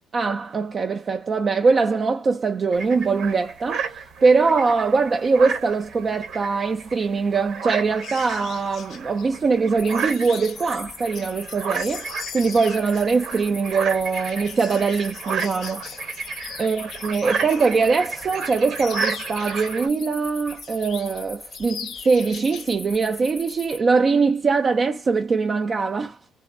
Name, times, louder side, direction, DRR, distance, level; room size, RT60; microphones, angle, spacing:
voice 1, 0.1-3.9 4.2-15.8 16.6-26.2, right 4 dB, 30° right, 0.3 m, -22 dB
sound 1, 2.7-19.9, right 5 dB, 60° right, 1.0 m, -33 dB
sound 2, 8.0-17.8 18.2-20.1 20.5-21.2 21.5-22.7 23.0-23.3, left 9 dB, 60° left, 0.4 m, -40 dB
sound 3, 9.8-23.8, left 3 dB, 25° left, 0.7 m, -41 dB
3.5 x 2.0 x 2.4 m
cardioid pair, 135°, 0 cm